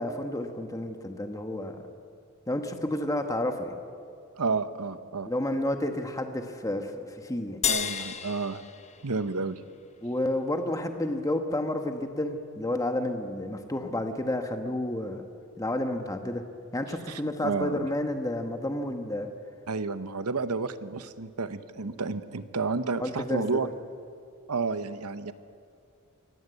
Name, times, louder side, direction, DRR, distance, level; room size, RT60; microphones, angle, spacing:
voice 1, 0.0-1.8 2.5-3.8 5.3-7.6 10.0-15.2 15.6-16.4 16.7-19.3 23.0-23.4, left 1 dB, 15° left, 6 dB, 1.2 m, -30 dB
voice 2, 4.3-5.3 7.7-8.6 9.0-9.6 17.1-17.9 19.7-23.7 24.5-25.3, right 4 dB, 85° right, 12 dB, 1.0 m, -31 dB
sound 1, 7.6-10.2, left 8 dB, 30° left, 1.1 m, -33 dB
23.0 x 17.5 x 8.1 m, 2.3 s
head